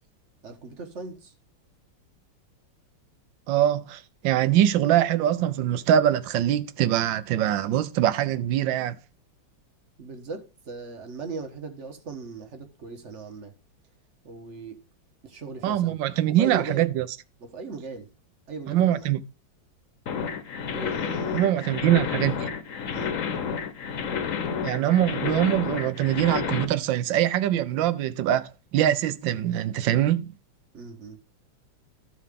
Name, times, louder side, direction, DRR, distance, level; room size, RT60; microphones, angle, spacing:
voice 1, 0.4-1.3 10.0-13.5 14.2-14.8 15.2-16.0 16.3-16.9 17.4-18.1 18.5-19.2 20.7-22.1 22.9-23.1 30.7-31.2, right 3 dB, 40° right, 1.4 m, -38 dB
voice 2, 3.5-9.0 15.6-17.1 18.7-19.2 21.3-22.5 24.6-30.3, right 11 dB, 75° right, 1.4 m, -23 dB
sound 1, 20.1-26.6, left 6 dB, 55° left, 1.0 m, -30 dB
14.0 x 4.8 x 3.7 m
omnidirectional pair, 2.1 m